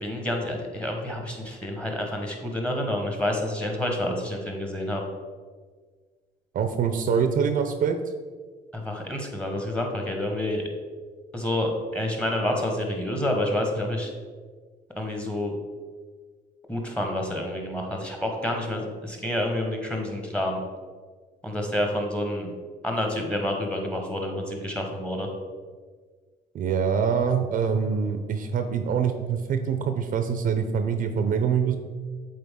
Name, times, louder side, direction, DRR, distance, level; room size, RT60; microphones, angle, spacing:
voice 1, 0.0-5.0 8.7-10.6 11.3-14.1 15.0-15.5 16.7-20.6 21.4-22.5 22.8-25.3, left 1 dB, 5° left, 2 dB, 1.2 m, -28 dB
voice 2, 6.5-8.0 26.5-31.8, right 6 dB, 55° right, 7 dB, 0.5 m, -24 dB
7.7 x 3.9 x 3.7 m, 1.5 s
cardioid pair, 110°, 17 cm